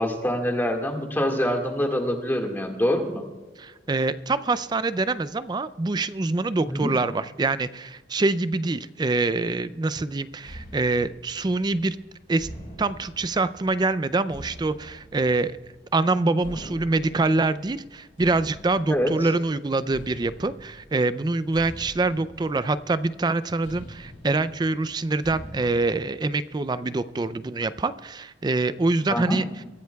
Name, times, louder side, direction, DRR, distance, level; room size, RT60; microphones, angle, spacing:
voice 1, 0.0-3.2 6.7-7.0 18.9-19.1 29.1-29.4, equal, 10° left, 2 dB, 1.8 m, -25 dB
voice 2, 3.6-12.0 12.3-12.5 12.8-15.6 15.9-29.5, right 3 dB, 25° right, 14 dB, 0.4 m, -25 dB
sound 1, 10.4-26.0, equal, 45° left, 4.6 m, -45 dB
23.5 x 15.0 x 2.3 m, 1.2 s
head